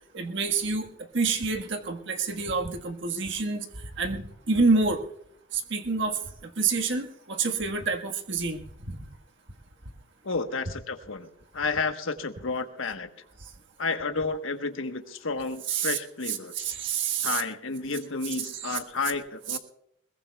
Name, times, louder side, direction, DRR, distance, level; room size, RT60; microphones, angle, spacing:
voice 1, 0.1-5.0 5.5-9.0 13.4-13.5 15.7-16.0 16.3-17.4 18.5-18.8 19.5-19.6, right 4 dB, 60° right, 4 dB, 1.6 m, -28 dB
voice 2, 10.2-11.3 11.5-13.1 13.8-16.7 17.2-19.6, left 4 dB, 75° left, 7 dB, 1.2 m, -31 dB
21.5 x 21.0 x 2.3 m, 0.71 s
head